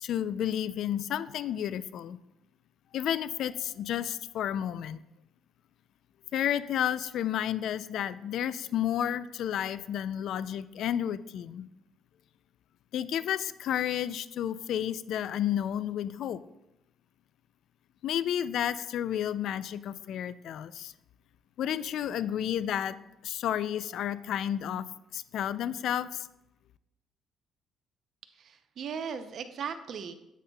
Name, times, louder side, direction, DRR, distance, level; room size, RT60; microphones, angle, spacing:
voice 1, 0.0-2.2 2.9-5.0 6.3-11.7 12.9-16.4 18.0-20.9 21.6-23.0 23.2-26.3, left 10 dB, 70° left, 16 dB, 0.3 m, -31 dB
voice 2, 28.3-30.1, right 6 dB, 55° right, 9 dB, 0.6 m, -37 dB
9.2 x 8.2 x 2.3 m, 0.90 s
cardioid pair, 115°, 0 cm